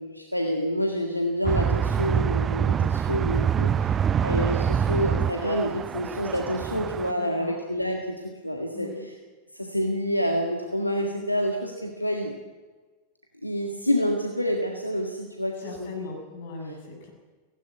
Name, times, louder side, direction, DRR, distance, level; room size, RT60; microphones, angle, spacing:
voice 1, 0.0-4.0 4.2-8.2 8.4-9.1 9.5-12.3 13.4-15.9, equal, 90° left, 2 dB, 1.8 m, -28 dB
sound 1, 1.4-7.1, right 8 dB, 25° right, 0.6 m, -25 dB
voice 2, 7.1-7.6 8.7-9.0 15.6-17.1, left 3 dB, 55° left, 2 dB, 7.0 m, -38 dB
17.0 x 16.5 x 9.5 m, 1.4 s
figure-of-eight pair, 90°, 0 cm